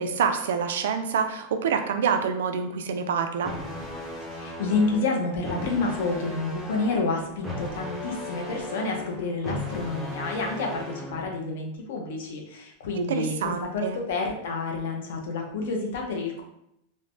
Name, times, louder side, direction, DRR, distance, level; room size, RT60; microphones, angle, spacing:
voice 1, 0.0-3.5 12.9-14.0, right 6 dB, 85° right, 7 dB, 0.3 m, -27 dB
sound 1, 3.4-11.4, left 1 dB, ahead, 0.4 m, -37 dB
voice 2, 4.3-16.4, left 3 dB, 65° left, 1 dB, 0.6 m, -29 dB
3.1 x 2.1 x 2.5 m, 0.79 s
supercardioid pair, 180°, 0 cm